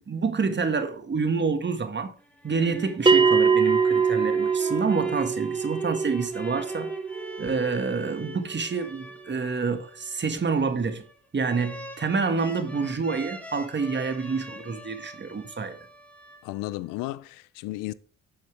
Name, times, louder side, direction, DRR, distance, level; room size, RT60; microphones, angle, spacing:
voice 1, 0.1-2.1 2.4-6.9 7.4-11.0 11.3-15.8, right 4 dB, 30° right, 1.6 m, -28 dB
sound 1, 2.2-16.8, equal, 5° left, 2.2 m, -42 dB
Bell, 3.1-8.1, right 5 dB, 15° right, 0.7 m, -23 dB
voice 2, 16.4-17.9, left 18 dB, 70° left, 0.6 m, -33 dB
8.7 x 7.3 x 3.3 m
hypercardioid pair, 55°, 34 cm